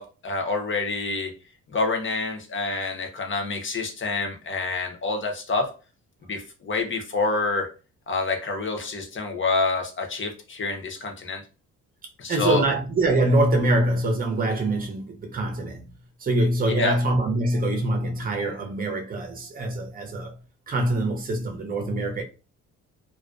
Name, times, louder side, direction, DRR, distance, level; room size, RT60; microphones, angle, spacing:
voice 1, 0.0-1.3 1.7-5.7 6.2-7.7 8.1-11.4 12.2-12.6 16.6-17.0, left 3 dB, 40° left, 0.7 m, -27 dB
voice 2, 12.3-15.8 16.2-20.4 20.7-22.2, right 1 dB, 30° right, 0.7 m, -24 dB
2.3 x 2.2 x 2.4 m
cardioid pair, 90°, 30 cm